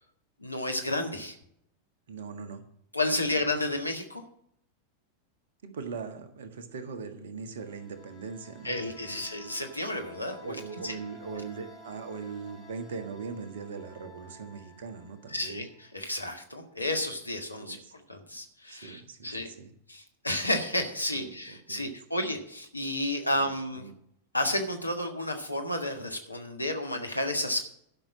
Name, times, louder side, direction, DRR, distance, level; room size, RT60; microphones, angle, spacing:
voice 1, 0.4-1.4 2.9-4.2 8.6-10.9 15.3-19.5 19.9-23.9 24.3-27.6, left 1 dB, 85° left, 4 dB, 1.6 m, -31 dB
voice 2, 2.1-2.6 3.2-3.3 5.6-9.2 10.4-15.6 17.6-17.9 18.7-19.7 21.1-21.9 23.4-23.5 23.8-23.9, right 5 dB, 60° right, 8 dB, 1.5 m, -40 dB
sound 1, 7.4-16.0, left 1 dB, 35° left, 3.1 m, -53 dB
11.5 x 6.0 x 7.4 m, 0.72 s
figure-of-eight pair, 90°, 0 cm